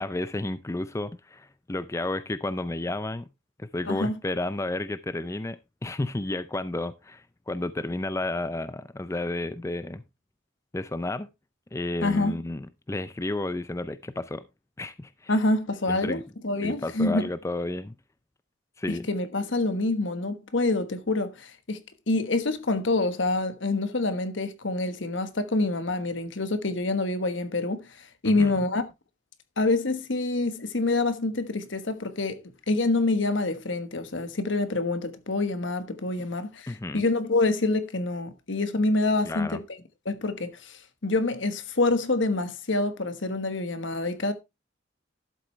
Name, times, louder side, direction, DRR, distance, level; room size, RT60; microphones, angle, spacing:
voice 1, 0.0-3.3 3.6-10.0 10.7-11.3 11.7-14.4 14.8-15.3 15.9-16.2 16.6-17.9 18.8-19.1 28.2-28.5 36.7-37.0 39.2-39.6, left 2 dB, 15° left, 0.4 m, -32 dB
voice 2, 12.0-12.4 15.3-17.3 18.9-21.8 22.1-28.8 29.6-32.4 32.7-39.6 40.0-44.3, left 2 dB, 70° left, 1.3 m, -26 dB
12.0 x 7.8 x 3.2 m
head